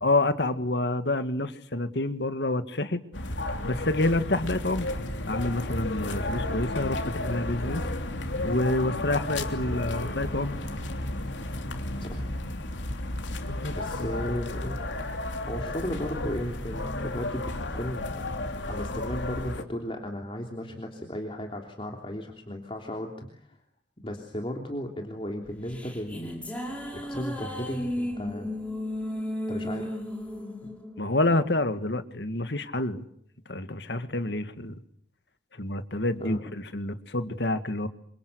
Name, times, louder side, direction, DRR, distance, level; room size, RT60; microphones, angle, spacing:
voice 1, 0.0-3.0 3.6-4.9 5.3-7.8 8.4-10.6 13.5-13.7 31.0-33.0 33.5-34.8 35.6-36.4 36.7-37.9, left 2 dB, 70° left, 10 dB, 2.0 m, -28 dB
sound 1, 3.1-19.6, left 1 dB, 85° left, 3.2 m, -33 dB
voice 2, 12.0-12.3 13.7-14.9 15.5-18.2 18.6-23.6 24.0-26.3 27.1-28.5 29.5-30.0 36.2-36.4, equal, 30° left, 2 dB, 3.3 m, -35 dB
sound 2, 25.5-32.0, left 1 dB, 5° left, 6.1 m, -35 dB
27.5 x 26.0 x 8.1 m, 0.64 s
head